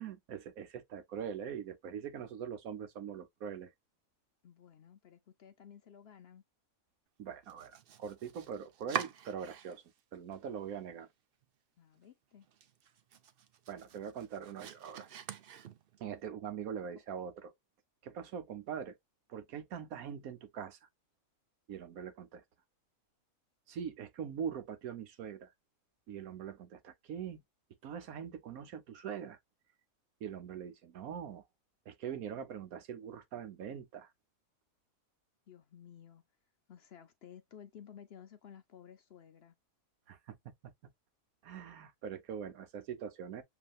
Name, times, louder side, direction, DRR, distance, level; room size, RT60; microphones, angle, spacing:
voice 1, 0.0-3.7 7.2-9.8 10.1-11.1 13.7-15.1 16.0-17.5 18.0-19.0 19.3-20.8 21.7-22.4 23.7-25.5 26.1-27.4 27.8-29.4 30.2-31.4 31.9-34.1 40.1-40.4 40.6-40.7 41.4-43.4, right 8 dB, 85° right, 1.3 m, -42 dB
voice 2, 4.4-6.4 11.8-12.5 35.5-36.2 36.7-39.6, left 8 dB, 60° left, 0.7 m, -55 dB
Domestic sounds home sounds, 7.4-10.0 10.3-11.1 11.4-11.5 11.9-12.0 12.4-16.1, right 9 dB, 55° right, 0.7 m, -44 dB
6.9 x 2.8 x 2.4 m
omnidirectional pair, 1.5 m